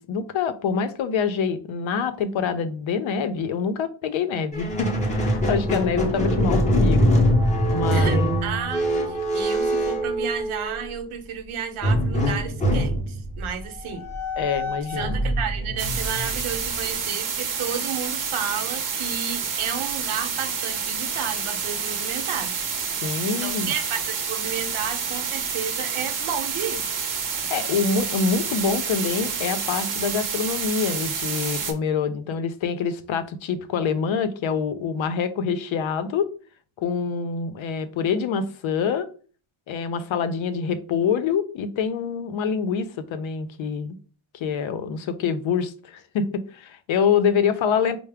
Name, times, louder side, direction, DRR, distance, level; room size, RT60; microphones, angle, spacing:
voice 1, 0.0-7.2 7.7-8.3 14.4-15.2 23.0-23.7 27.5-36.3 36.8-39.1 39.7-44.0 44.3-48.0, left 6 dB, 70° left, 0.6 m, -26 dB
Squeak, 4.5-10.9 11.8-17.0, equal, 15° left, 0.6 m, -23 dB
voice 2, 7.9-14.1 14.9-22.5 23.2-26.8, right 7 dB, 75° right, 0.8 m, -32 dB
sound 1, 15.8-31.7, right 6 dB, 40° right, 0.7 m, -29 dB
4.6 x 2.1 x 3.4 m
wide cardioid pair, 165°, 50 cm